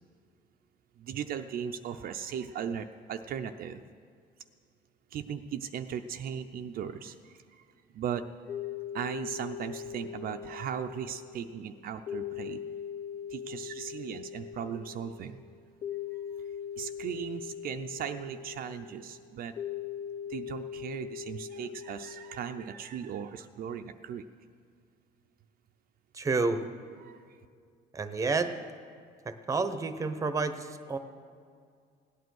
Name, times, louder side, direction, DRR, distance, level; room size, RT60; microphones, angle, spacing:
voice 1, 1.0-3.9 5.1-7.7 7.9-8.3 8.9-12.6 13.3-15.4 16.1-16.3 16.8-19.5 20.3-24.2 27.0-27.4, right 8 dB, 60° right, 7 dB, 0.6 m, -38 dB
sound 1, 8.5-22.7, left 8 dB, 45° left, 1.9 m, -41 dB
voice 2, 26.1-26.6 27.9-28.5 29.2-31.0, right 3 dB, 20° right, 10 dB, 0.9 m, -30 dB
17.0 x 9.4 x 6.3 m, 2.2 s
cardioid pair, 110°, 17 cm